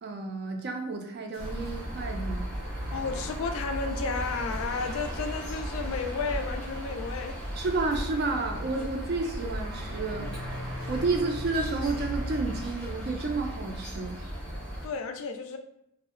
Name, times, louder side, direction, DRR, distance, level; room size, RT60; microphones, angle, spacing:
voice 1, 0.0-2.5 7.6-10.4 10.9-14.2, right 3 dB, 45° right, 3 dB, 0.3 m, -31 dB
sound 1, 1.3-2.4 4.5-5.5 7.6-8.7 10.8-12.2, equal, 85° right, 0.7 m, -43 dB
sound 2, 1.4-14.9, equal, 5° left, 0.7 m, -36 dB
voice 2, 2.9-7.4 14.8-15.6, left 4 dB, 70° left, 5 dB, 0.3 m, -32 dB
2.5 x 2.0 x 2.4 m, 0.78 s
head